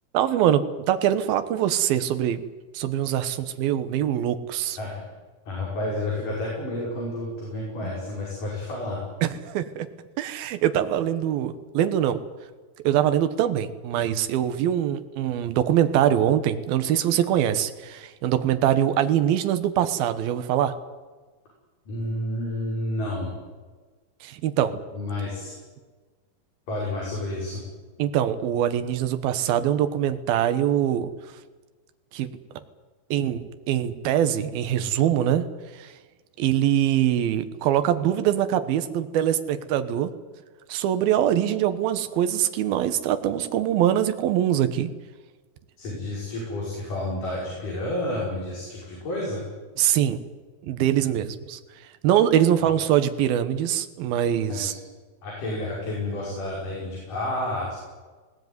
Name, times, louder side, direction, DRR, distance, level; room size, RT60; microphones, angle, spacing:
voice 1, 0.1-2.4 2.7-4.8 7.8-7.9 9.2-9.9 10.2-12.2 12.8-20.7 24.2-24.8 28.0-31.1 32.1-32.3 33.1-35.5 35.7-35.9 36.4-40.1 40.7-44.9 49.8-50.2 50.6-51.6 52.0-54.7, right 10 dB, 75° right, 10 dB, 3.0 m, -23 dB
voice 2, 5.5-9.0 21.9-23.4 24.9-25.5 26.7-27.6 45.8-49.4 52.6-52.7 54.4-54.8 55.2-57.8, left 1 dB, 55° left, -4 dB, 7.3 m, -30 dB
21.0 x 18.0 x 9.5 m, 1.3 s
omnidirectional pair, 4.4 m